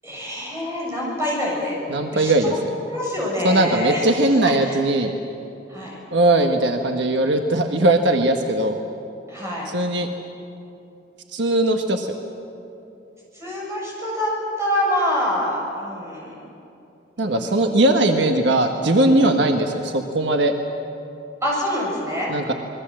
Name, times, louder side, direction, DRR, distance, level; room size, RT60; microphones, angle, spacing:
voice 1, 0.0-1.8 2.1-2.6 2.9-4.0 4.6-4.8 5.7-6.0 9.3-9.7 13.3-14.3 14.6-16.3 17.2-17.5 18.7-19.3 21.4-22.3, equal, 15° right, -4 dB, 7.6 m, -26 dB
voice 2, 1.9-2.5 3.4-5.1 6.1-8.8 9.7-10.1 11.3-12.2 17.2-20.5 22.3-22.5, right 1 dB, 70° right, 4 dB, 1.4 m, -19 dB
27.5 x 21.5 x 7.7 m, 2.8 s
head